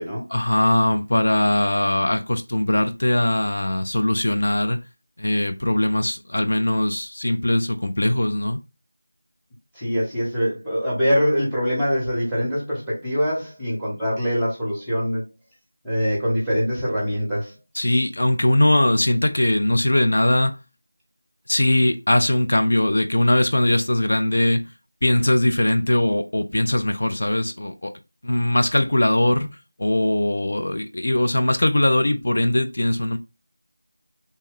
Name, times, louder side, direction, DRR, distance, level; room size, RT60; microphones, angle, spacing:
voice 1, 0.3-4.8 5.2-8.6 17.7-20.6 21.5-24.7 25.0-27.9 28.2-29.5 29.8-33.2, left 1 dB, 60° left, 0.3 m, -20 dB
voice 2, 9.7-15.2 15.8-17.5 17.8-17.9, equal, ahead, 0.8 m, -23 dB
3.2 x 2.1 x 3.4 m
figure-of-eight pair, 175°, 0 cm